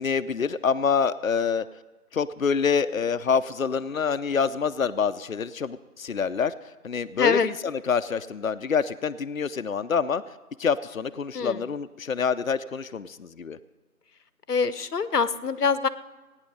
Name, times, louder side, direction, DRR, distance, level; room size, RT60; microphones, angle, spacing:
voice 1, 0.0-1.7 2.1-6.5 6.8-10.2 10.6-13.6, left 6 dB, 65° left, 12 dB, 0.6 m, -26 dB
voice 2, 7.2-7.5 11.3-11.6 14.5-15.9, left 5 dB, 90° left, 15 dB, 0.8 m, -24 dB
17.0 x 9.7 x 5.3 m, 1.2 s
figure-of-eight pair, 175°, 45 cm